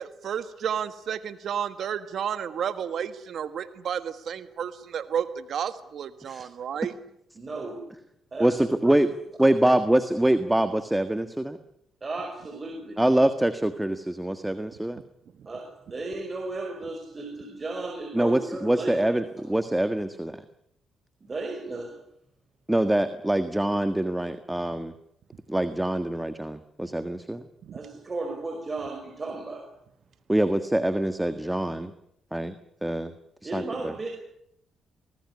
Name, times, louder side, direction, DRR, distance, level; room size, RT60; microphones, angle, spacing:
voice 1, 0.0-6.9, right 8 dB, 65° right, 11 dB, 1.6 m, -31 dB
voice 2, 7.4-7.8 8.3-8.5 8.8-9.0 12.0-13.2 15.5-19.0 21.2-22.0 27.7-29.7 33.4-34.1, right 2 dB, 30° right, 2 dB, 5.5 m, -35 dB
voice 3, 8.4-9.1 9.4-11.6 13.0-15.0 18.1-20.4 22.7-24.9 25.5-27.5 30.3-31.9 32.3-32.5 32.8-33.1 33.4-33.9, right 1 dB, 10° right, 10 dB, 1.6 m, -24 dB
25.0 x 19.0 x 9.8 m, 0.76 s
cardioid pair, 90°, 0 cm